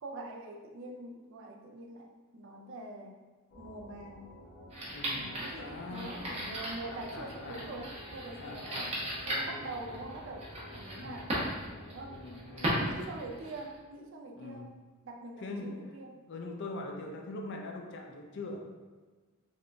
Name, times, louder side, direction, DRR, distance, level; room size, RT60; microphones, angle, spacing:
voice 1, 0.0-3.2 3.6-4.4 5.1-8.9 9.3-11.5 11.9-12.2 12.6-14.7 15.0-16.2, right 2 dB, 60° right, 2 dB, 0.5 m, -44 dB
sound 1, 3.5-13.5, left 1 dB, 80° left, 1.3 m, -52 dB
sound 2, 4.7-13.8, equal, 30° right, 0.9 m, -38 dB
voice 2, 4.9-6.2 6.9-7.7 8.4-9.7 10.9-11.3 12.1-12.7 14.4-14.7 15.4-15.8 16.3-18.7, left 2 dB, 55° left, 2 dB, 0.5 m, -43 dB
3.8 x 3.5 x 2.2 m, 1.3 s
head